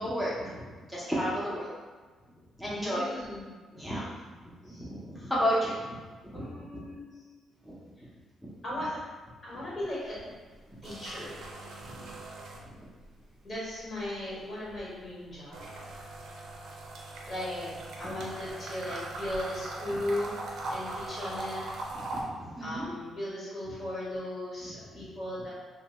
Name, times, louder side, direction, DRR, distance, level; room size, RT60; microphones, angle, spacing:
voice 1, 0.0-1.7 2.6-3.1 3.7-4.0 4.6-6.4 6.7-6.8 8.4-8.5 11.9-12.1 21.9-22.9, equal, 5° left, -8 dB, 0.7 m, -32 dB
voice 2, 2.6-3.5 4.7-4.9 6.3-7.1 8.6-9.0 9.4-10.1 10.8-11.4 13.4-15.7 17.3-17.7 18.0-20.4 20.7-21.6 22.6-25.5, left 1 dB, 45° left, -7 dB, 1.3 m, -37 dB
sound 1, 9.8-10.2 10.5-13.2 13.5-22.2, right 2 dB, 75° right, 0.5 m, -40 dB
2.6 x 2.2 x 3.0 m, 1.4 s
cardioid pair, 90°, 0 cm